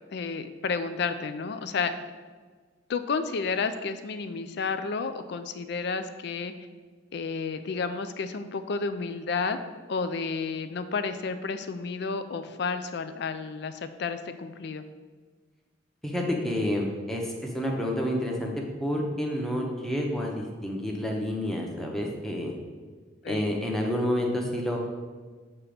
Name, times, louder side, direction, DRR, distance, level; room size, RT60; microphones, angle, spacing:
voice 1, 0.1-1.9 2.9-6.5 7.1-9.6 9.9-14.9 23.2-23.5, left 4 dB, 65° left, 11 dB, 0.4 m, -31 dB
voice 2, 16.0-18.5 18.8-22.6 23.3-24.8, left 1 dB, ahead, 0 dB, 0.8 m, -29 dB
7.3 x 3.0 x 5.0 m, 1.4 s
head